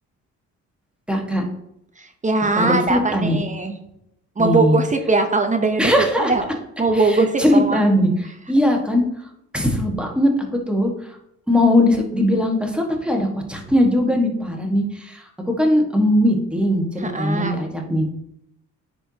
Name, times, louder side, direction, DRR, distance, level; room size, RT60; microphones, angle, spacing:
voice 1, 1.1-1.4 2.5-3.4 4.4-4.8 5.8-6.3 7.1-8.1 8.5-9.0 9.5-10.3 10.7-10.9 11.5-18.1, left 1 dB, 5° right, 1 dB, 1.5 m, -19 dB
voice 2, 2.0-3.8 4.4-5.9 6.2-6.4 6.8-7.8 17.0-17.6, right 3 dB, 25° right, 6 dB, 0.8 m, -20 dB
10.0 x 4.6 x 2.8 m, 0.78 s
cardioid pair, 90°, 30 cm